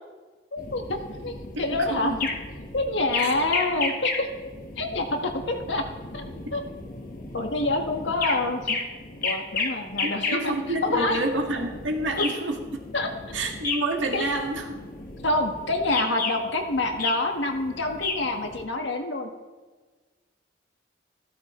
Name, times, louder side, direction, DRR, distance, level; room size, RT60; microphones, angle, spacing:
voice 1, 0.5-1.3 1.6-2.2 2.7-4.3 4.8-5.8 6.1-6.2 6.5-6.6 7.3-8.8 9.2-10.5 10.8-11.2 12.9-13.1 14.1-14.3 15.2-19.3, left 2 dB, 80° left, 3 dB, 1.5 m, -26 dB
sound 1, 0.6-18.6, left 4 dB, 45° left, 1.3 m, -34 dB
voice 2, 1.7-2.2 3.2-3.3 10.0-12.8 13.3-14.8, right 2 dB, 85° right, 2 dB, 1.8 m, -28 dB
15.5 x 12.5 x 3.2 m, 1.3 s
head